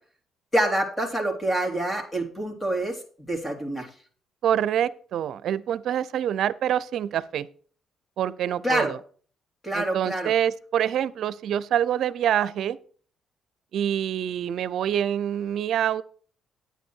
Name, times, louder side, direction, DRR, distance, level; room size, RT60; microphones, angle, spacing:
voice 1, 0.5-3.0 3.3-3.9 8.6-8.9 9.6-10.3, right 1 dB, 15° left, 3.2 m, -26 dB
voice 2, 4.4-7.5 8.2-9.0 9.7-12.8 13.7-16.0, right 10 dB, 70° right, 0.6 m, -26 dB
9.3 x 9.2 x 4.6 m
cardioid pair, 95°, 0 cm